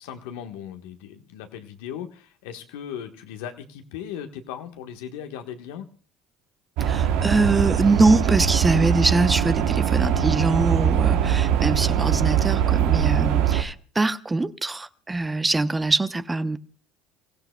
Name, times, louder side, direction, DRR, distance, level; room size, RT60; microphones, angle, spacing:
voice 1, 0.0-5.8, left 9 dB, 80° left, 1.3 m, -37 dB
voice 2, 6.8-16.6, right 2 dB, 15° right, 0.8 m, -23 dB
sound 1, 6.8-13.6, right 9 dB, 70° right, 1.0 m, -22 dB
29.0 x 16.0 x 2.3 m
hypercardioid pair, 75°, 0 cm